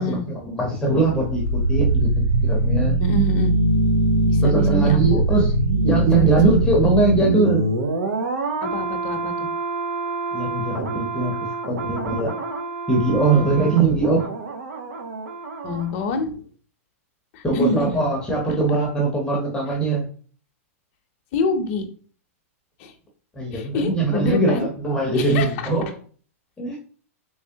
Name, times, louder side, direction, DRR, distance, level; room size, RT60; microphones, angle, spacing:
voice 1, 0.0-2.1 2.4-2.9 4.4-5.5 5.8-7.7 10.3-11.4 11.7-12.3 12.9-14.3 17.4-20.1 23.3-25.9 26.6-26.8, right 3 dB, 10° left, -1 dB, 0.8 m, -21 dB
sound 1, 0.9-15.9 16.2-16.3, right 2 dB, 80° right, 0.8 m, -23 dB
voice 2, 3.0-3.5 4.2-5.2 6.2-6.7 8.6-9.5 13.4-13.8 15.6-16.3 17.3-18.1 21.3-21.9 22.8-22.9 23.5-24.7 25.1-25.5, left 3 dB, 45° left, 5 dB, 0.7 m, -27 dB
3.4 x 3.2 x 2.8 m, 0.43 s
hypercardioid pair, 130°, 8 cm